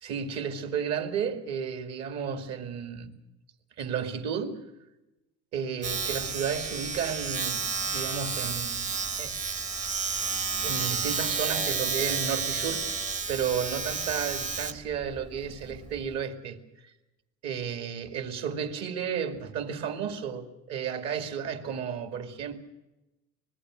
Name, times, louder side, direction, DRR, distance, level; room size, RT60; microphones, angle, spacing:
voice 1, 0.0-3.1 3.8-4.7 5.5-9.4 10.6-16.9 17.4-22.6, right 7 dB, 60° right, 2.4 m, -33 dB
Domestic sounds home sounds, 5.8-16.2, right 5 dB, 25° right, 0.8 m, -31 dB
25.5 x 20.5 x 6.4 m
cardioid pair, 155°, 30 cm